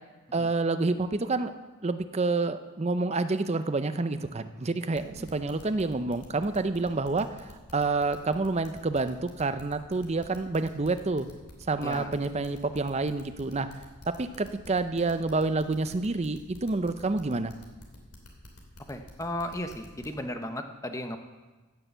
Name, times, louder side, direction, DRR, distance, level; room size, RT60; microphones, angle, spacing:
voice 1, 0.3-1.5 1.8-11.3 11.7-13.7 14.1-17.5, right 3 dB, 30° right, 10 dB, 0.5 m, -28 dB
sound 1, 4.9-20.1, left 1 dB, 80° left, 2.7 m, -49 dB
voice 2, 18.9-21.2, left 1 dB, 15° left, 6 dB, 0.8 m, -35 dB
16.0 x 6.8 x 6.8 m, 1.2 s
head